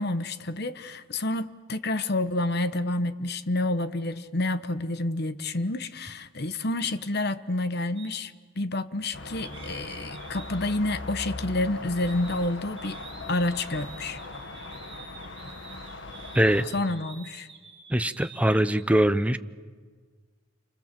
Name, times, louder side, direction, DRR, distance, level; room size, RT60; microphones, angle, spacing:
voice 1, 0.0-13.0 13.3-14.2 16.7-17.5, left 2 dB, 55° left, 12 dB, 1.1 m, -29 dB
sound 1, 8.0-8.2 9.4-12.5 12.8-18.8, right 5 dB, 30° right, 5.6 m, -48 dB
sound 2, 9.1-16.7, left 2 dB, 70° left, 1.8 m, -40 dB
voice 2, 16.3-16.6 17.9-19.4, right 1 dB, 5° right, 11 dB, 0.8 m, -22 dB
29.5 x 25.5 x 7.6 m, 1.6 s
head